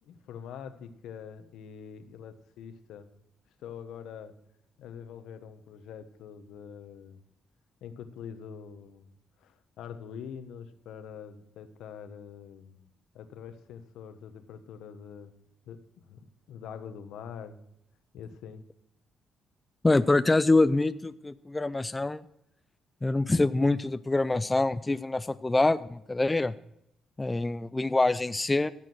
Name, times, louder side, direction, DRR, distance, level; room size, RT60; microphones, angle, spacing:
voice 1, 0.0-3.1 3.6-4.3 4.8-7.2 7.8-9.1 9.4-12.9 13.1-15.3 15.7-15.8 16.1-17.6 18.1-18.7, left 7 dB, 85° left, 9 dB, 1.3 m, -44 dB
voice 2, 19.8-22.2 23.0-26.5 27.2-28.7, left 2 dB, 15° left, 13 dB, 0.5 m, -25 dB
15.0 x 7.6 x 6.2 m, 0.80 s
cardioid pair, 90°, 0 cm